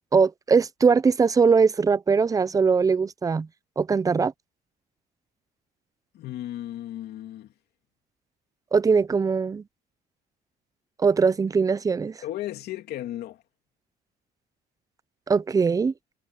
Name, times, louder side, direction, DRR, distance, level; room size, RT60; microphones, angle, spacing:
voice 1, 0.1-3.5 3.8-4.3 8.7-9.6 11.0-12.2 15.3-15.9, right 5 dB, 20° right, 0.6 m, -21 dB
voice 2, 6.1-7.5 12.2-13.4, left 13 dB, 70° left, 3.0 m, -35 dB
cardioid pair, 110°, 17 cm